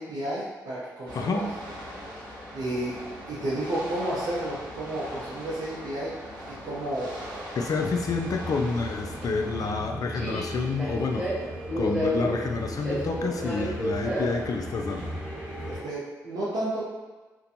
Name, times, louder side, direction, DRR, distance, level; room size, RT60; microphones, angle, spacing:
voice 1, 0.0-1.5 2.5-3.0 3.3-6.1 6.5-7.1 15.6-16.9, right 1 dB, 60° right, -7 dB, 0.6 m, -31 dB
voice 2, 1.1-1.5 7.5-11.3 11.8-15.1, left 4 dB, 50° left, 4 dB, 0.3 m, -29 dB
sound 1, 1.1-9.7, equal, 85° right, 1.0 m, -40 dB
Subway metro underground, 7.9-15.8, equal, 5° right, 1.4 m, -32 dB
2.5 x 2.2 x 2.7 m, 1.2 s
hypercardioid pair, 45°, 8 cm